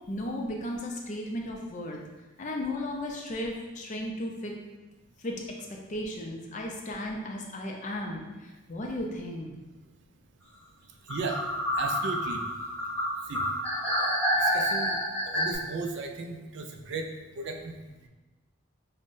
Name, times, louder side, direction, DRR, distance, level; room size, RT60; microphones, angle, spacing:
voice 1, 0.1-2.0 2.4-4.5 5.2-5.4 5.9-9.5, left 1 dB, 35° left, 0 dB, 0.4 m, -35 dB
voice 2, 11.0-12.5 12.8-12.9 13.2-18.1, right 3 dB, 55° right, 4 dB, 0.3 m, -37 dB
sound 1, 11.1-15.6, equal, 10° left, 0.9 m, -28 dB
5.3 x 2.1 x 2.6 m, 1.1 s
head